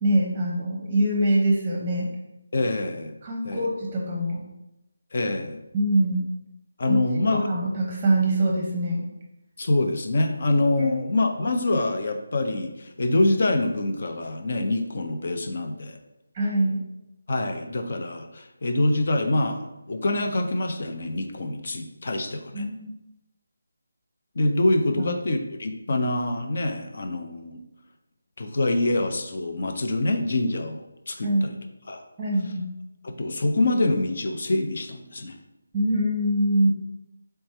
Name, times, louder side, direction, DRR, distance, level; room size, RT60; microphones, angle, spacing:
voice 1, 0.0-2.1 3.2-4.4 5.7-6.3 6.9-7.0 7.3-9.1 10.8-10.9 16.3-16.8 22.5-22.9 25.0-25.2 31.2-31.5 32.2-32.7 35.7-36.7, right 1 dB, 15° right, -2 dB, 0.8 m, -24 dB
voice 2, 2.5-3.1 3.4-3.7 5.1-5.6 6.8-7.4 9.6-16.0 17.3-22.7 24.3-27.6 28.4-31.5 31.9-32.0 33.0-35.3, left 2 dB, 50° left, 5 dB, 0.6 m, -25 dB
3.3 x 3.3 x 4.2 m, 0.92 s
figure-of-eight pair, 165°, 0 cm